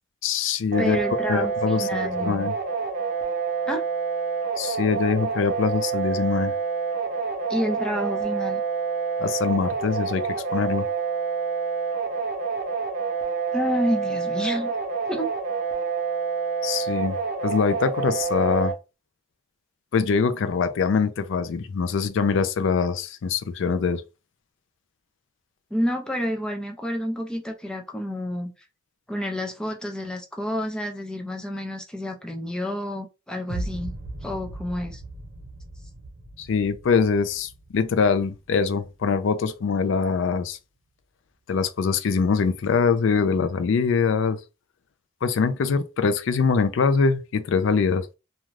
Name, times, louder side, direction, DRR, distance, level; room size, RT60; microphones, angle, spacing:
voice 1, 0.2-1.0 1.3-2.5 4.6-6.5 9.2-10.9 16.6-17.2 17.4-18.7 19.9-24.0 36.4-40.6 41.5-44.4 45.2-48.1, left 5 dB, 70° left, 0.4 m, -23 dB
sound 1, 0.7-18.7, right 5 dB, 40° right, 0.7 m, -28 dB
voice 2, 0.8-2.3 3.7-3.8 7.5-8.6 13.5-14.7 15.1-15.3 25.7-28.5 29.1-34.0 34.2-35.0, equal, 5° left, 0.5 m, -29 dB
sound 2, 33.5-39.5, right 1 dB, 75° right, 0.8 m, -38 dB
2.5 x 2.3 x 3.1 m
head